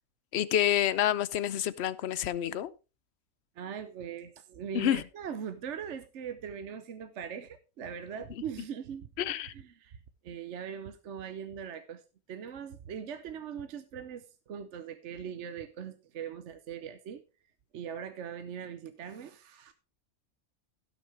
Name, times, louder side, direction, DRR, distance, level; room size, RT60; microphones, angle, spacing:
voice 1, 0.3-2.7 4.7-5.0 9.2-9.5, left 11 dB, 60° left, 0.8 m, -28 dB
voice 2, 3.6-9.1 9.5-10.0 10.2-12.0 12.3-17.2 17.7-19.7, right 7 dB, 60° right, 1.0 m, -41 dB
16.5 x 6.6 x 3.4 m
omnidirectional pair, 1.5 m